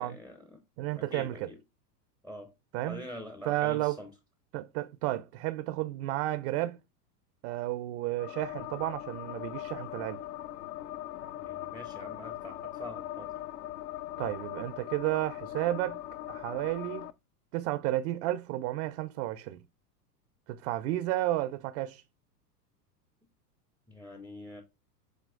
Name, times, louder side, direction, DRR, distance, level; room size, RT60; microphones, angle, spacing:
voice 1, 0.0-0.6 0.9-1.6 2.2-2.5 2.9-4.1 11.4-13.3 23.9-24.6, left 1 dB, 5° left, 0.5 m, -45 dB
voice 2, 0.8-1.5 2.7-3.0 3.4-4.0 4.5-6.8 7.4-10.2 14.2-16.0 16.3-17.1 17.5-19.6 20.5-22.0, right 15 dB, 45° right, 0.5 m, -32 dB
sound 1, 8.2-17.1, left 13 dB, 75° left, 0.6 m, -40 dB
7.6 x 2.9 x 2.4 m
hypercardioid pair, 110°, 48 cm